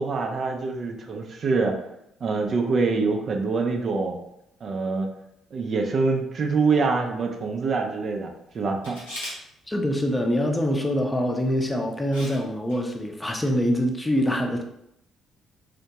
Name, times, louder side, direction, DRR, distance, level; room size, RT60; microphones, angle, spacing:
voice 1, 0.0-1.8 2.2-4.2 4.6-5.1 5.5-9.0, right 4 dB, 45° right, 2 dB, 0.4 m, -25 dB
Camera, 8.8-9.4 11.4-11.6 12.1-12.4 12.7-12.8, left 1 dB, 80° left, 0.9 m, -36 dB
voice 2, 9.7-14.6, equal, 15° left, 2 dB, 0.6 m, -24 dB
3.5 x 2.1 x 2.8 m, 0.78 s
figure-of-eight pair, 45°, 0 cm